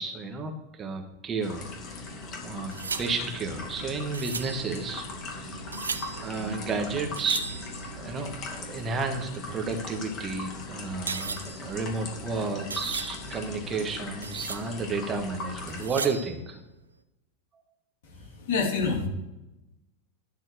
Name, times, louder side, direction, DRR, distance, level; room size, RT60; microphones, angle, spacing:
voice 1, 0.0-1.6 2.4-5.1 5.3-5.6 6.2-7.4 8.0-16.6, right 4 dB, 25° right, 4 dB, 1.4 m, -32 dB
sound 1, 1.4-15.9, left 3 dB, 30° left, 2.3 m, -39 dB
sound 2, 2.7-8.3 9.6-13.8 14.1-14.9 15.7-16.6, right 5 dB, 75° right, 0.6 m, -38 dB
voice 2, 18.0-19.1, left 4 dB, 55° left, 0 dB, 3.1 m, -28 dB
12.0 x 4.5 x 7.8 m, 0.97 s
figure-of-eight pair, 90°, 0 cm